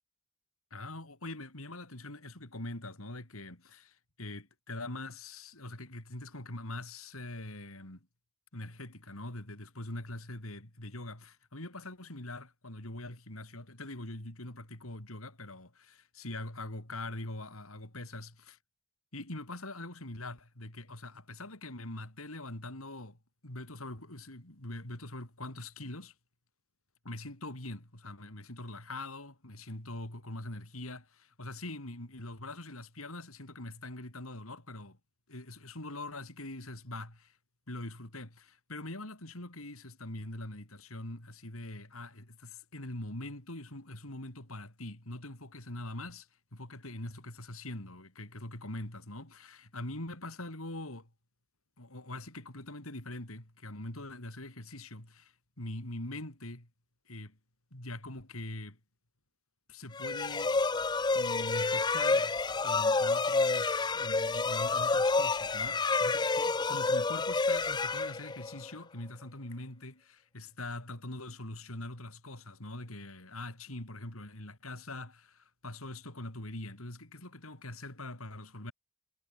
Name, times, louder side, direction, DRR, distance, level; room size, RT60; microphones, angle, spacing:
voice 1, 0.7-8.1 8.5-18.6 19.1-26.1 27.0-35.0 35.3-37.4 37.7-51.1 51.8-56.7 57.1-57.4 57.7-58.8 59.7-60.6 61.1-78.7, left 2 dB, 90° left, 5.0 m, -43 dB
sound 1, 59.9-68.7, left 3 dB, 20° left, 0.5 m, -29 dB
head